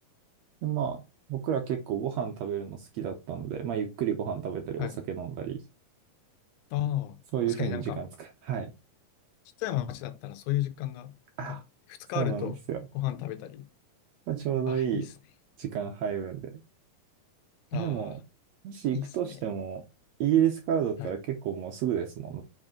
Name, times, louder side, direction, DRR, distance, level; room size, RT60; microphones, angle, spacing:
voice 1, 0.6-1.0 1.3-5.6 7.3-8.7 11.4-11.6 12.1-12.8 14.3-15.1 15.6-16.5 17.7-18.2 18.6-19.8 20.2-22.4, right 9 dB, 80° right, 1.5 m, -30 dB
voice 2, 6.7-7.2 7.5-8.0 9.6-11.6 11.9-12.6 12.9-13.7 14.7-15.1 17.7-18.2 18.9-19.4 21.0-21.2, left 13 dB, 90° left, 2.4 m, -33 dB
5.3 x 5.2 x 3.7 m
omnidirectional pair, 4.1 m